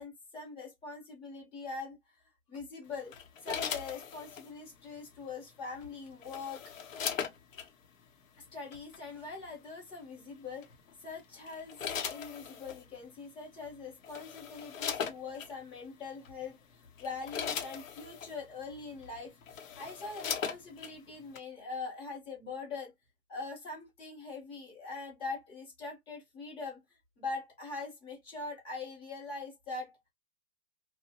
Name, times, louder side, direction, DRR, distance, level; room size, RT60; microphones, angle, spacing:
voice 1, 0.0-2.0 2.5-3.1 3.4-6.7 8.4-10.7 11.0-11.8 12.1-22.9 23.3-26.8 27.2-30.0, left 4 dB, 10° left, 0.7 m, -42 dB
sound 1, 3.1-4.5 5.8-7.7 8.7-9.0 10.6-10.9 11.5-12.8 13.6-13.7 14.0-15.5 16.2-16.4 16.8-18.3 19.0-19.1 19.4-20.9 21.4-21.5, left 7 dB, 65° left, 0.8 m, -38 dB
2.9 x 2.1 x 2.8 m
hypercardioid pair, 150°, 44 cm